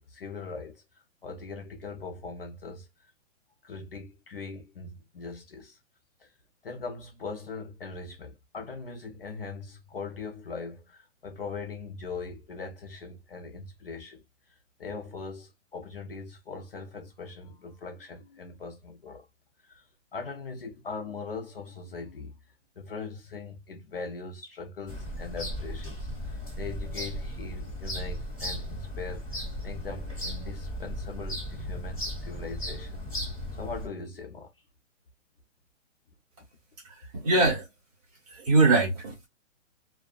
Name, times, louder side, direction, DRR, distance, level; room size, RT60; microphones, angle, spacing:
voice 1, 0.0-2.9 3.6-5.8 6.2-6.3 6.6-14.2 14.8-19.3 19.6-19.8 20.1-22.3 22.8-34.5, left 4 dB, 50° left, 0.5 m, -40 dB
sound 1, 24.9-33.9, equal, 10° left, 1.3 m, -36 dB
voice 2, 37.1-37.7 38.3-39.3, right 3 dB, 30° right, 1.2 m, -22 dB
2.3 x 2.2 x 2.3 m
hypercardioid pair, 170°, 38 cm